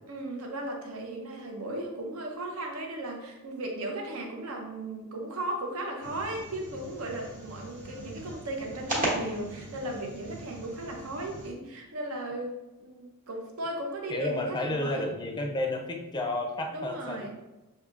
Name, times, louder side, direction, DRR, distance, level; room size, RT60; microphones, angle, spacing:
voice 1, 0.1-12.5 12.8-15.1 16.7-17.3, right 1 dB, 70° right, 1 dB, 0.7 m, -36 dB
sound 1, 6.0-11.5, right 1 dB, 35° right, 1.2 m, -37 dB
voice 2, 14.1-17.3, left 1 dB, 20° left, 3 dB, 0.4 m, -31 dB
6.5 x 2.7 x 2.4 m, 1.1 s
head